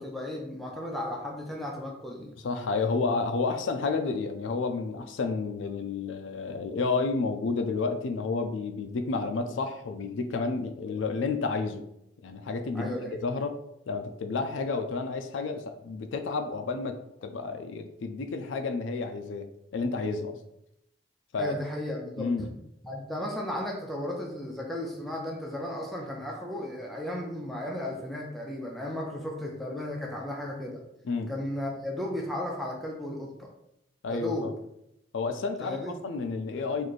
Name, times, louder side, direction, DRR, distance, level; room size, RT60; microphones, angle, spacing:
voice 1, 0.0-2.4 12.7-13.2 21.4-22.3 22.8-30.8 31.3-33.5 34.1-34.5 35.6-36.0, left 1 dB, ahead, -2 dB, 0.4 m, -35 dB
voice 2, 2.4-11.8 12.2-13.5 13.9-20.4 21.3-21.5 22.2-22.5 31.0-31.3 34.0-34.5 35.1-35.8 36.0-36.9, left 4 dB, 80° left, 7 dB, 0.4 m, -30 dB
3.1 x 2.5 x 4.0 m, 0.80 s
head